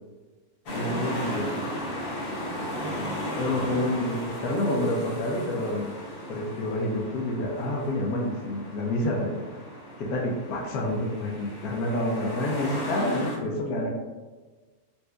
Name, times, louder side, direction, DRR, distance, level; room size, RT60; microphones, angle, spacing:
voice 1, 0.7-1.6 3.4-5.9 6.3-9.4 10.0-13.9, left 1 dB, 80° left, -1 dB, 1.1 m, -28 dB
sound 1, 0.7-13.4, equal, 60° left, 0.6 m, -35 dB
4.2 x 2.5 x 2.2 m, 1.3 s
omnidirectional pair, 1.6 m